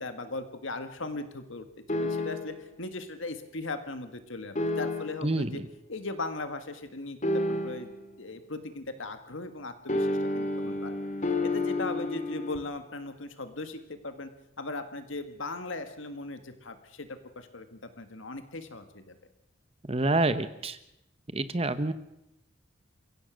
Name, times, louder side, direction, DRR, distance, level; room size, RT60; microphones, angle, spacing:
voice 1, 0.0-1.7 1.9-5.6 5.9-7.9 8.2-11.0 11.4-14.3 14.6-19.2, left 2 dB, 70° left, 8 dB, 1.8 m, -38 dB
sound 1, 1.9-2.7 4.5-5.4 7.2-8.1 9.9-12.6, left 2 dB, 35° left, 2.3 m, -30 dB
voice 2, 5.2-5.6 19.8-20.8 21.3-21.9, right 2 dB, 30° right, 12 dB, 0.9 m, -27 dB
29.5 x 16.5 x 6.4 m, 0.86 s
head